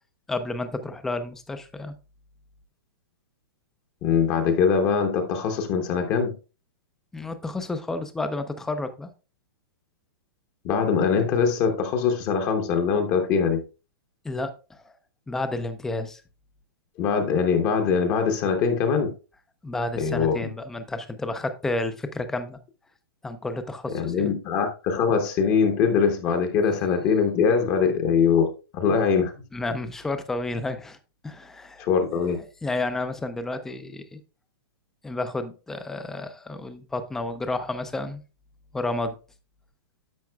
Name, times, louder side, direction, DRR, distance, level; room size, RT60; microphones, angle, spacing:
voice 1, 0.3-1.9 7.1-9.1 14.2-14.9 15.3-16.2 19.6-22.6 23.2-24.4 29.5-31.0 31.2-31.9 32.1-34.2 35.0-38.2 38.7-39.2, left 2 dB, 5° left, 0.4 m, -31 dB
voice 2, 4.0-6.4 10.6-13.6 17.0-19.1 20.0-20.4 23.9-29.3 31.8-32.4, left 6 dB, 20° left, 0.8 m, -22 dB
10.5 x 7.2 x 2.2 m
hypercardioid pair, 170°, 13 cm